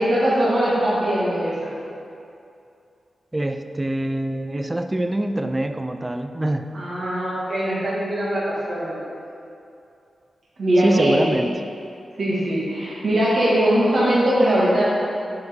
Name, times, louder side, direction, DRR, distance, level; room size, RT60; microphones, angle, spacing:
voice 1, 0.0-1.7 6.7-9.0 10.6-11.2 12.2-14.8, right 1 dB, 55° right, -8 dB, 1.8 m, -21 dB
voice 2, 3.3-6.6 10.8-11.5, right 1 dB, 15° right, 7 dB, 0.3 m, -24 dB
7.7 x 6.0 x 3.6 m, 2.6 s
wide cardioid pair, 155°, 0 cm